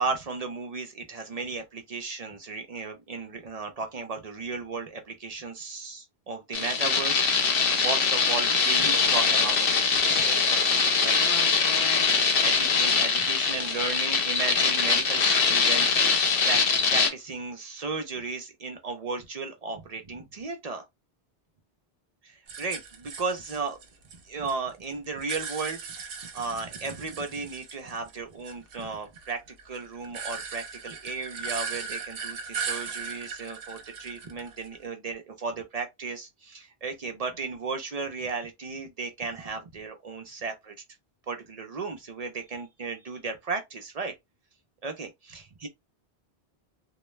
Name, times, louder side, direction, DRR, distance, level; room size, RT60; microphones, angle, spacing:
voice 1, 0.0-10.7 11.0-11.2 12.4-16.0 16.4-20.8 22.2-23.8 24.2-29.4 29.6-40.7 41.3-44.1 44.8-45.7, right 4 dB, 50° right, 0.5 m, -35 dB
sound 1, 6.5-17.1, left 5 dB, 70° left, 0.8 m, -23 dB
sound 2, 22.5-24.5 24.8-28.2 28.4-34.8, right 5 dB, 70° right, 0.8 m, -38 dB
2.2 x 2.2 x 3.1 m
omnidirectional pair, 1.0 m